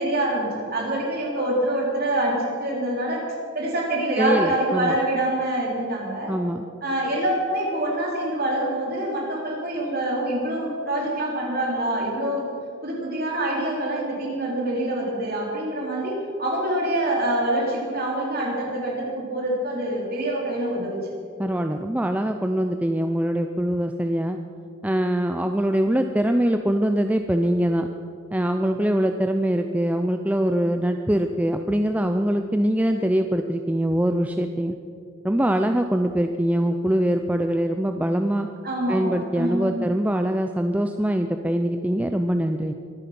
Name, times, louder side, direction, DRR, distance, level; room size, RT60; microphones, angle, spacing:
voice 1, 0.0-3.2 3.5-6.3 6.8-12.4 12.8-21.0 38.6-39.8, right 1 dB, 45° right, -3 dB, 4.0 m, -25 dB
voice 2, 4.2-5.0 6.3-6.7 21.4-24.4 24.8-27.9 28.3-34.8 35.2-38.5 38.9-42.7, right 1 dB, 5° right, 6 dB, 0.4 m, -23 dB
23.5 x 9.2 x 6.0 m, 2.4 s
head